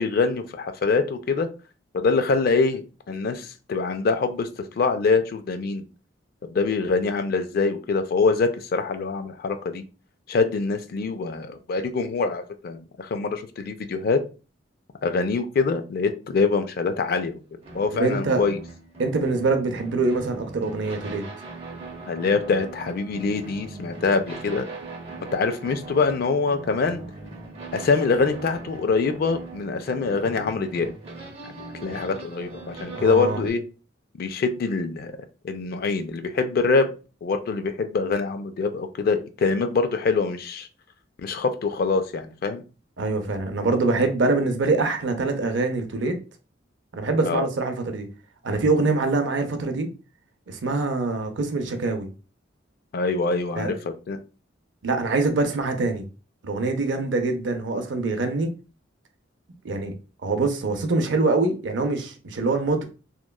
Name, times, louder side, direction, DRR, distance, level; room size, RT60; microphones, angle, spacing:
voice 1, 0.0-1.5 1.9-5.8 6.4-9.8 10.3-14.2 15.0-17.4 17.7-18.6 22.1-24.7 25.3-27.0 27.7-30.9 31.4-33.6 34.2-35.2 35.4-36.9 37.2-40.7 41.2-42.6 47.3-47.5 52.9-53.8 54.1-54.2, left 4 dB, 50° left, 0.3 m, -24 dB
sound 1, 17.6-33.5, right 3 dB, 30° right, 0.7 m, -40 dB
voice 2, 17.9-18.4 19.0-21.2 32.9-33.4 43.0-46.2 46.9-48.1 48.4-49.9 50.5-52.1 53.6-53.7 54.8-56.0 56.4-58.5 59.6-59.9 60.2-62.8, right 3 dB, 65° right, 0.5 m, -24 dB
2.9 x 2.2 x 2.2 m
head